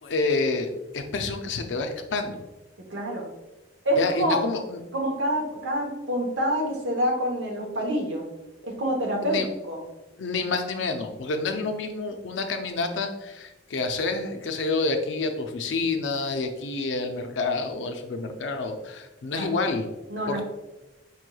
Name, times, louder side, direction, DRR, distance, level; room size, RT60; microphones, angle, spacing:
voice 1, 0.0-2.4 4.0-4.8 9.2-9.5 10.2-19.9 20.3-20.4, left 3 dB, 80° left, 6 dB, 0.5 m, -28 dB
voice 2, 2.9-3.3 3.8-4.4 4.9-8.3 8.6-9.4 9.7-9.8 19.3-19.5 20.1-20.4, equal, 75° right, 0 dB, 0.9 m, -26 dB
5.2 x 3.1 x 2.3 m, 1.1 s
head